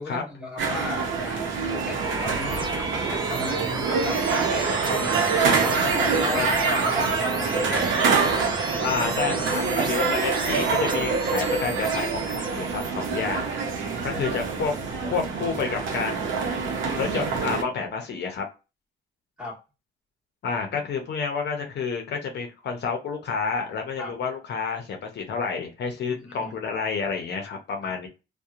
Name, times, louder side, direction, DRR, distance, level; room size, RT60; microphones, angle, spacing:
voice 1, 0.0-2.7 3.0-5.4 5.6-8.5 13.8-14.2 19.4-19.6 24.0-24.1 26.0-26.6 27.8-27.9, left 2 dB, 5° right, 1.3 m, -36 dB
sound 1, 0.6-17.6, right 4 dB, 75° right, 0.7 m, -26 dB
Wind instrument woodwind instrument, 1.9-6.1, right 3 dB, 20° left, 1.1 m, -40 dB
sound 2, 2.0-12.9, right 2 dB, 25° right, 0.6 m, -34 dB
voice 2, 8.8-13.5 14.0-14.7 15.0-16.4 17.0-18.4 20.4-28.1, left 5 dB, 60° left, 0.7 m, -29 dB
2.7 x 2.2 x 2.4 m
cardioid pair, 90°, 20 cm